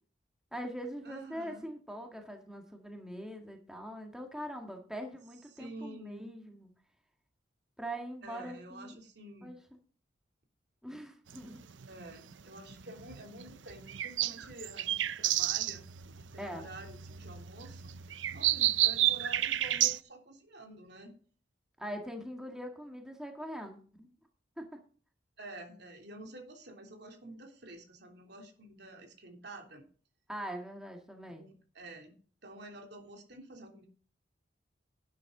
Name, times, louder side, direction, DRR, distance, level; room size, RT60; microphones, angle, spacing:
voice 1, 0.5-6.7 7.8-9.0 9.4-9.6 10.8-11.6 16.4-16.7 21.8-24.1 24.6-24.7 30.3-31.5, equal, 5° right, 2 dB, 1.9 m, -42 dB
voice 2, 1.0-1.7 5.5-6.3 8.2-9.5 11.9-15.8 16.2-17.9 18.3-21.1 23.6-23.7 25.4-29.8 31.3-32.1 32.4-33.9, right 1 dB, 60° right, 3 dB, 3.2 m, -49 dB
sound 1, 11.3-20.0, right 13 dB, 85° right, 0.7 m, -32 dB
12.0 x 9.7 x 3.9 m, 0.41 s
head